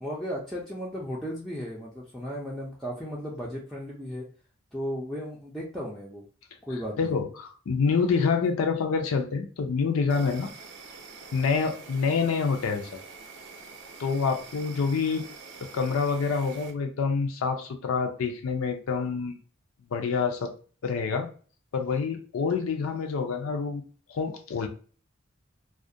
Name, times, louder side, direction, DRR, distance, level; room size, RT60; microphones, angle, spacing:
voice 1, 0.0-4.3 4.7-6.2 6.6-7.2, equal, ahead, -5 dB, 0.4 m, -35 dB
voice 2, 7.0-10.5 11.3-13.0 14.0-15.2 15.7-19.3 19.9-20.5 20.8-21.3 21.7-23.8 24.1-24.7, left 5 dB, 80° left, 5 dB, 0.4 m, -27 dB
Insect, 10.1-16.7, right 4 dB, 60° right, 0.5 m, -46 dB
2.3 x 2.1 x 2.6 m, 0.40 s
head